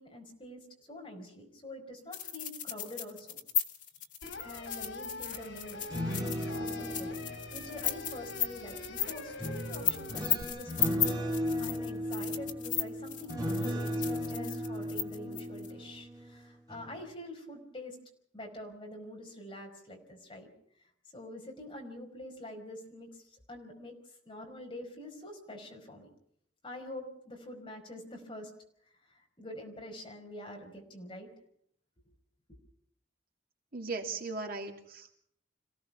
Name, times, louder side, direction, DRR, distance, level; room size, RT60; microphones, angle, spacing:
voice 1, 0.0-3.4 4.4-5.9 6.2-7.2 7.5-10.9 11.6-18.0 18.3-20.5 21.1-24.0 24.2-26.1 26.6-28.5 29.4-31.3, left 1 dB, 25° left, 1 dB, 5.0 m, -46 dB
sound 1, 2.1-15.7, left 10 dB, 45° left, 2.0 m, -35 dB
sound 2, 4.2-10.4, left 2 dB, 85° left, 3.4 m, -44 dB
sound 3, 5.7-8.6 9.4-16.3 16.7-17.0, equal, 20° right, 3.6 m, -36 dB
voice 2, 33.7-35.2, right 3 dB, 50° right, 2 dB, 3.0 m, -38 dB
27.0 x 17.0 x 5.9 m, 0.69 s
head